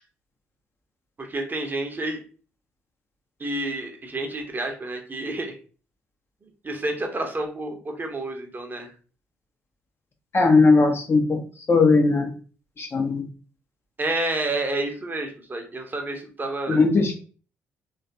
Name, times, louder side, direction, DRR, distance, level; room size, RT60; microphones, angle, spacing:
voice 1, 1.2-2.2 3.4-5.6 6.6-8.9 14.0-16.8, right 2 dB, 30° right, 3 dB, 0.7 m, -29 dB
voice 2, 10.3-11.4 11.7-12.3 12.8-13.2 16.7-17.2, left 3 dB, 35° left, 4 dB, 0.6 m, -18 dB
3.1 x 2.3 x 2.6 m, 0.39 s
figure-of-eight pair, 45°, 7 cm